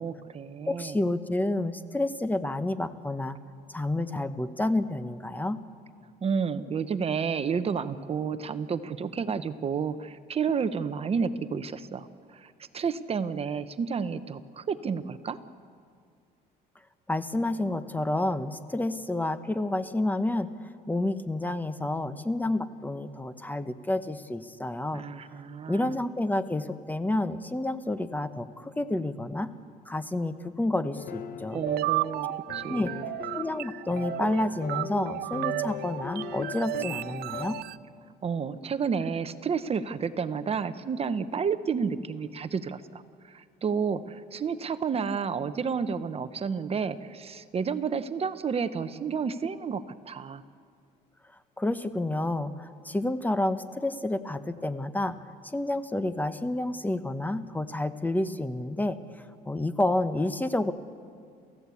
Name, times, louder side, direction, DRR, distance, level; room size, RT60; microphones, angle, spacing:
voice 1, 0.0-1.0 6.2-15.4 24.9-26.0 31.5-33.1 38.2-50.4, right 6 dB, 35° right, 12 dB, 0.9 m, -31 dB
voice 2, 0.7-3.4 3.7-5.6 17.1-20.5 20.9-25.0 25.7-29.5 29.9-31.6 32.7-32.9 33.3-37.6 51.6-55.2 55.5-59.0 59.4-60.7, left 1 dB, 10° left, 11 dB, 1.0 m, -29 dB
sound 1, 30.9-37.6, left 8 dB, 65° left, 1.2 m, -40 dB
sound 2, 31.5-37.8, right 17 dB, 70° right, 0.5 m, -33 dB
29.0 x 15.5 x 8.4 m, 2.2 s
cardioid pair, 110°, 17 cm